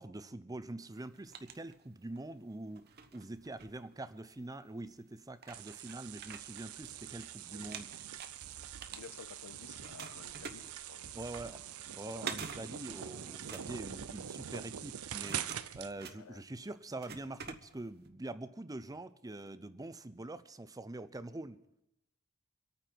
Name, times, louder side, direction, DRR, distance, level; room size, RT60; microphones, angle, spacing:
voice 1, 0.0-7.9 11.1-11.6 12.0-21.6, right 2 dB, 15° right, 0.6 m, -45 dB
sound 1, 0.9-2.3 2.7-4.4 5.0-5.1 5.4-7.3 7.6-9.5 9.8-18.1, right 6 dB, 50° right, 1.0 m, -48 dB
sound 2, 5.5-15.9, right 9 dB, 90° right, 0.6 m, -44 dB
voice 2, 8.9-11.5 11.9-12.2 16.1-16.4, left 7 dB, 80° left, 0.4 m, -54 dB
25.5 x 9.0 x 4.6 m
head